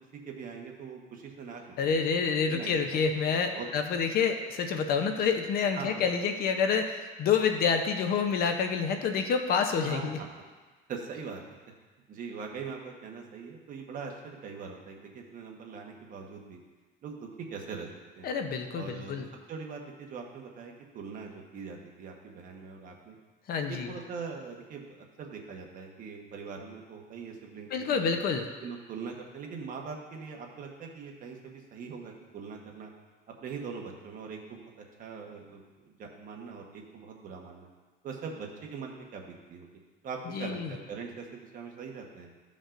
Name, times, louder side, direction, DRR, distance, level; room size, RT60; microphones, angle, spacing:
voice 1, 0.1-2.0 2.5-3.7 5.7-6.3 9.9-10.3 10.9-11.4 12.1-16.6 17.0-17.9 18.1-18.3 18.7-23.2 23.6-28.2 28.6-32.9 33.4-34.7 35.0-37.7 38.0-39.7 40.0-42.3, right 5 dB, 40° right, 1 dB, 1.1 m, -42 dB
voice 2, 1.8-10.2 18.2-19.3 23.5-23.9 27.7-28.5 40.3-40.7, left 6 dB, 45° left, 6 dB, 0.7 m, -28 dB
13.5 x 5.3 x 2.5 m, 1.3 s
cardioid pair, 145°, 21 cm